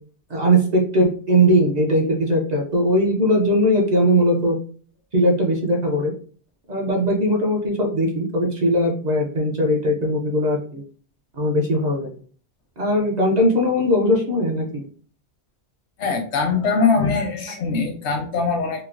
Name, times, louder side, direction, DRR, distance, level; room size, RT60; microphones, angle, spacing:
voice 1, 0.3-4.6 5.1-6.1 6.7-10.8 11.4-12.1 12.8-14.9, equal, 50° right, -1 dB, 0.6 m, -19 dB
voice 2, 16.0-18.8, left 4 dB, 85° left, 4 dB, 1.0 m, -22 dB
3.1 x 2.1 x 2.4 m, 0.44 s
omnidirectional pair, 1.1 m